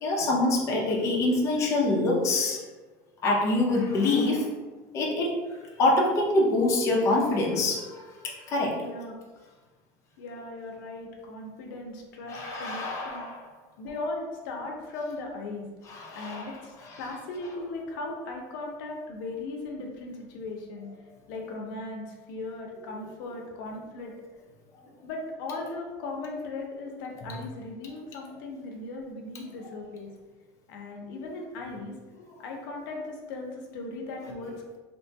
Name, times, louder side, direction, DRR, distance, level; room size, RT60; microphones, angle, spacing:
voice 1, 0.0-2.6 3.2-4.5 4.9-8.8 12.3-13.5 15.9-16.5 16.8-17.0, left 2 dB, 30° left, -2 dB, 0.5 m, -25 dB
voice 2, 8.8-9.2 10.2-13.2 13.8-15.6 16.1-20.9 21.3-24.1 25.0-30.1 30.7-31.9 32.4-34.6, left 2 dB, 80° left, 1 dB, 0.6 m, -38 dB
2.8 x 2.2 x 2.6 m, 1.3 s
cardioid pair, 160°, 11 cm